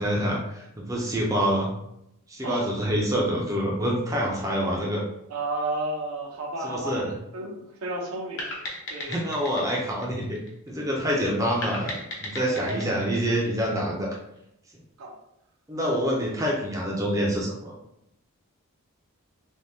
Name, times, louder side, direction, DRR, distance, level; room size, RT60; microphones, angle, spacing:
voice 1, 0.0-1.7 2.3-5.0 6.6-7.1 9.1-10.4 10.7-11.9 12.2-14.2 15.7-17.7, equal, 15° right, -2 dB, 0.4 m, -26 dB
voice 2, 5.3-7.0 7.3-8.5 8.9-9.2 11.1-11.2 12.3-13.1 15.0-15.2, right 2 dB, 80° right, 1 dB, 0.6 m, -32 dB
sound 1, 8.4-10.9 11.6-14.2, left 1 dB, 55° left, 0.7 m, -37 dB
3.4 x 2.2 x 2.6 m, 0.79 s
head